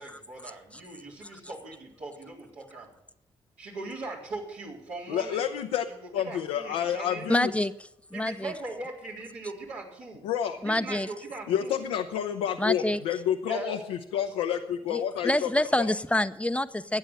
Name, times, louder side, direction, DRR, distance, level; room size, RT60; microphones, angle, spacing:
voice 1, 0.0-2.9 3.6-5.5 5.9-7.3 8.1-10.2 10.6-11.8 13.5-13.7 14.2-14.3, right 3 dB, 75° right, -4 dB, 4.1 m, -40 dB
voice 2, 5.1-5.9 6.1-7.5 10.2-10.6 11.5-15.5, left 9 dB, 90° left, 4 dB, 0.7 m, -29 dB
voice 3, 7.3-7.7 8.1-8.5 10.6-11.1 12.6-13.0 14.9-17.0, left 1 dB, 10° left, 12 dB, 0.7 m, -27 dB
13.0 x 8.9 x 7.6 m, 0.83 s
hypercardioid pair, 45°, 13 cm